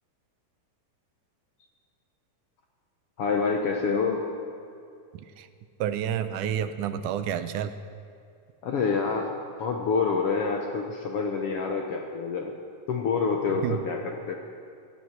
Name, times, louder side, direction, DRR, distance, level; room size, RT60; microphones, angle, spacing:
voice 1, 3.2-4.3 8.6-9.3 9.6-12.5 12.9-14.3, left 5 dB, 65° left, 2 dB, 1.5 m, -27 dB
voice 2, 5.8-7.7 13.6-13.8, right 9 dB, 80° right, 11 dB, 2.1 m, -29 dB
18.0 x 13.5 x 5.9 m, 2.4 s
omnidirectional pair, 3.7 m